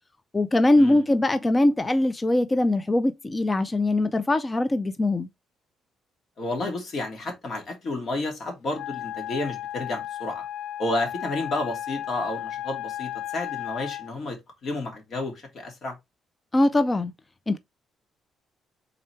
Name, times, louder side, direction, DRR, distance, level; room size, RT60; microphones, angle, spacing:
voice 1, 0.3-5.3 16.5-17.1 17.5-17.6, left 1 dB, 20° left, 0.5 m, -22 dB
voice 2, 6.4-10.4 10.8-16.0, left 2 dB, 55° left, 2.2 m, -31 dB
Wind instrument woodwind instrument, 8.7-14.1, left 12 dB, 80° left, 0.3 m, -34 dB
3.8 x 3.2 x 4.3 m
cardioid pair, 90°, 0 cm